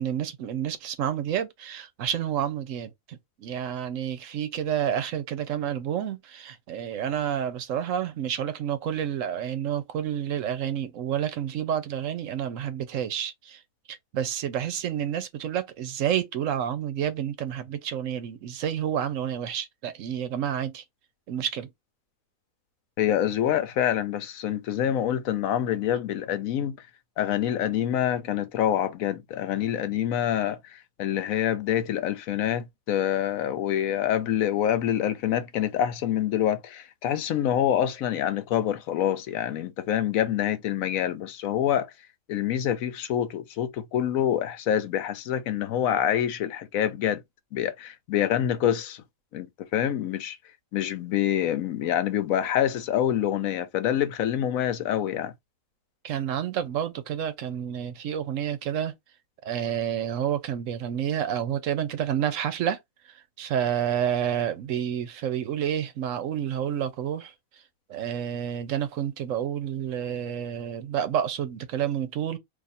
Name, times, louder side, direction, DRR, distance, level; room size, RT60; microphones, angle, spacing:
voice 1, 0.0-13.6 13.9-20.8 21.3-21.7 56.0-58.9 59.4-62.8 63.1-67.3 67.9-72.4, right 9 dB, 70° right, 1.0 m, -29 dB
voice 2, 23.0-26.8 27.2-41.9 42.3-47.2 47.5-49.0 49.3-50.4 50.7-55.3, left 10 dB, 85° left, 1.1 m, -26 dB
2.7 x 2.5 x 4.1 m
omnidirectional pair, 1.4 m